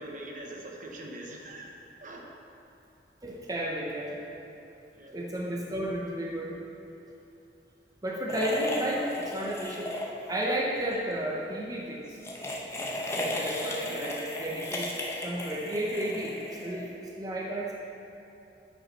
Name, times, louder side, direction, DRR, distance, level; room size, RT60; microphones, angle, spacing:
voice 1, 0.0-2.3 4.9-5.2 13.2-14.0, right 1 dB, 50° right, 0 dB, 1.0 m, -44 dB
voice 2, 3.2-4.3 5.1-6.6 8.0-10.0 10.3-12.0 13.1-14.9 15.2-17.7, right 1 dB, 20° right, -3 dB, 0.7 m, -32 dB
sound 1, 8.3-10.5 10.8-11.0 12.1-17.1, left 1 dB, 15° left, 1.0 m, -35 dB
8.8 x 5.5 x 5.4 m, 2.8 s
head